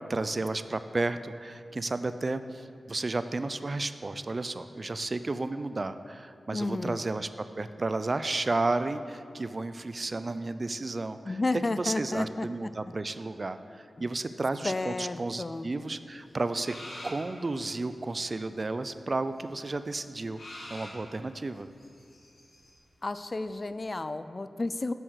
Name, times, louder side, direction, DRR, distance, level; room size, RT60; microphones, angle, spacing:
voice 1, 0.1-7.3 7.5-11.4 11.8-16.7 17.0-20.4 20.7-21.7, right 2 dB, 40° right, 11 dB, 0.4 m, -32 dB
voice 2, 6.5-7.0 11.2-12.5 14.6-15.7 23.0-24.9, left 2 dB, 35° left, 13 dB, 0.3 m, -32 dB
sound 1, 16.3-17.5 19.4-19.5 19.7-19.8 20.4-22.7 23.1-23.2 23.5-23.6, left 1 dB, 70° left, 2.7 m, -45 dB
7.8 x 7.8 x 6.5 m, 2.4 s
wide cardioid pair, 85°, 0 cm